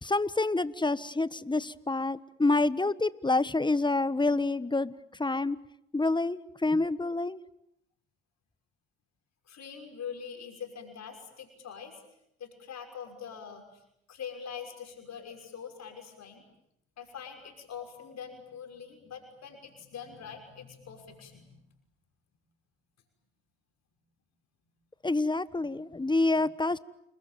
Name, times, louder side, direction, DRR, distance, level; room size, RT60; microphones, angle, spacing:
voice 1, 0.0-5.6 5.9-7.4 25.0-26.8, left 2 dB, 15° left, 16 dB, 1.4 m, -27 dB
voice 2, 9.5-12.0 12.4-13.8 14.1-16.4 17.0-21.6, left 7 dB, 65° left, 4 dB, 6.1 m, -43 dB
29.0 x 21.5 x 9.2 m, 0.78 s
hypercardioid pair, 50°, 29 cm